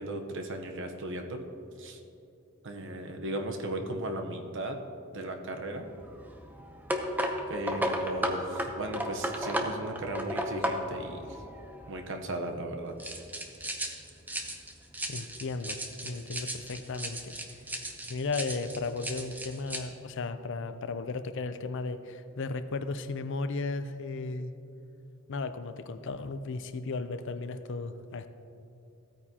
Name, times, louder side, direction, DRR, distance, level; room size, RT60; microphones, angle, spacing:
voice 1, 0.0-1.4 1.8-2.0 2.6-4.8 5.1-5.9 7.5-11.4 11.9-12.9, right 1 dB, 65° right, 4 dB, 0.9 m, -36 dB
sound 1, 5.8-12.1 13.0-19.8, equal, 10° right, 0.7 m, -35 dB
voice 2, 15.1-17.4 18.1-24.5 25.3-28.3, left 3 dB, 60° left, 11 dB, 0.5 m, -35 dB
15.5 x 9.1 x 2.9 m, 2.7 s
head